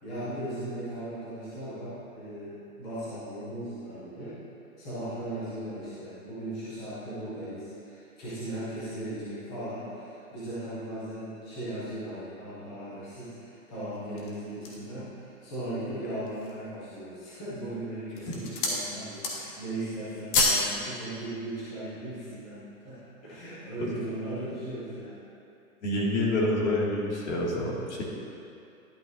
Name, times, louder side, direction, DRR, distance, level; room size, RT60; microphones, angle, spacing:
voice 1, 0.0-4.4 4.8-25.3, right 1 dB, 5° left, -12 dB, 0.3 m, -37 dB
sound 1, 14.0-15.0 15.6-15.7 16.1-16.7 17.4-17.7 18.1-18.8 19.1-19.6 19.9-20.7 21.0-21.2, left 3 dB, 35° left, 1.5 m, -28 dB
voice 2, 25.8-28.0, left 1 dB, 55° left, -4 dB, 2.3 m, -27 dB
11.5 x 8.8 x 2.7 m, 2.6 s
hypercardioid pair, 140°, 43 cm